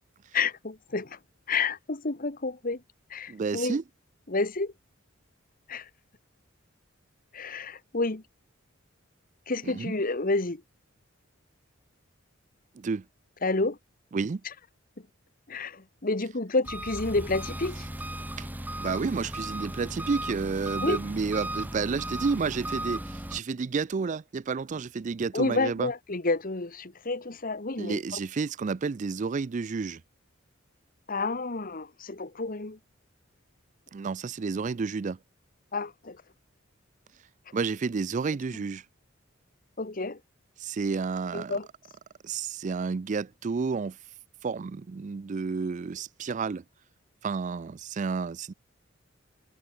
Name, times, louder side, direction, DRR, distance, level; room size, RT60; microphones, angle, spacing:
voice 1, 0.3-1.2 1.5-2.8 3.1-3.8 4.3-4.7 5.7-5.9 7.3-8.2 9.5-10.6 13.4-13.8 15.5-17.9 20.8-21.0 25.3-28.0 31.1-32.8 35.7-36.2 39.8-40.2 41.3-41.7, left 3 dB, 45° left, 1.4 m, -29 dB
voice 2, 3.3-3.8 9.6-9.9 12.8-13.0 14.1-14.4 18.4-18.5 18.8-25.9 27.8-30.0 33.9-35.2 37.5-38.8 40.6-41.6 42.2-44.0 44.4-46.6 47.2-48.5, right 5 dB, 40° right, 0.4 m, -30 dB
Engine, 16.6-23.4, right 1 dB, 10° right, 2.0 m, -36 dB
head